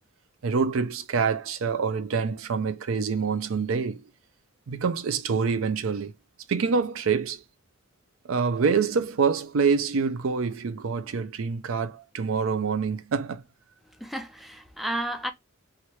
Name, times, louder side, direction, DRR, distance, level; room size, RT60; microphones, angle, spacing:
voice 1, 0.4-4.0 4.7-6.1 6.5-7.4 8.2-13.4, right 5 dB, 70° right, 0.5 m, -26 dB
voice 2, 14.0-15.3, right 1 dB, ahead, 0.5 m, -32 dB
2.9 x 2.5 x 3.0 m
head